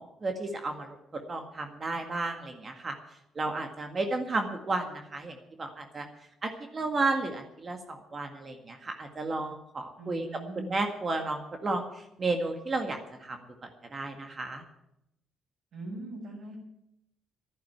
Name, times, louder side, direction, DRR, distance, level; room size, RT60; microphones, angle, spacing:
voice 1, 0.0-2.9 3.4-6.1 6.4-10.3 10.6-11.8 12.2-14.6, right 3 dB, 35° right, 4 dB, 1.8 m, -33 dB
voice 2, 10.0-10.8 15.7-16.6, right 2 dB, 65° right, -2 dB, 7.4 m, -41 dB
11.5 x 10.5 x 9.4 m, 0.85 s
cardioid pair, 90°, 0 cm